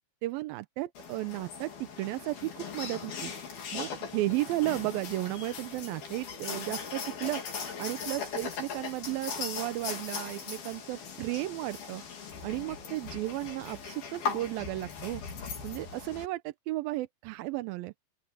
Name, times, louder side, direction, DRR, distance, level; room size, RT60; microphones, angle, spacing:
voice 1, 0.2-3.3 3.7-7.4 7.8-12.0 12.4-15.2 15.6-17.9, right 18 dB, 85° right, 2.4 m, -34 dB
sound 1, 1.0-16.3, left 6 dB, 80° left, 6.0 m, -39 dB
open air
omnidirectional pair, 4.3 m